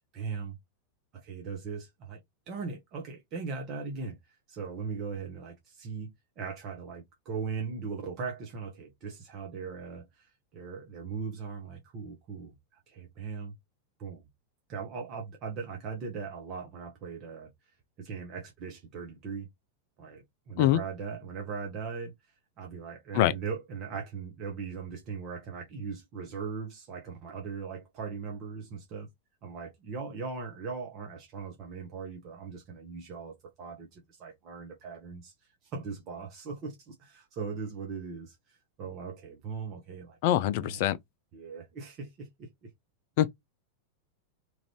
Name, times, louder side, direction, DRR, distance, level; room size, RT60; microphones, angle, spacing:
voice 1, 0.1-0.6 1.1-2.2 2.5-13.5 14.0-14.2 14.7-17.5 18.0-19.5 20.0-22.1 22.6-29.1 29.4-35.3 35.6-40.2 40.4-40.8 41.3-42.7, right 5 dB, 35° right, 0.9 m, -39 dB
voice 2, 40.2-41.0 43.2-43.3, left 13 dB, 50° left, 0.3 m, -24 dB
3.1 x 2.5 x 2.9 m
figure-of-eight pair, 90°, 0 cm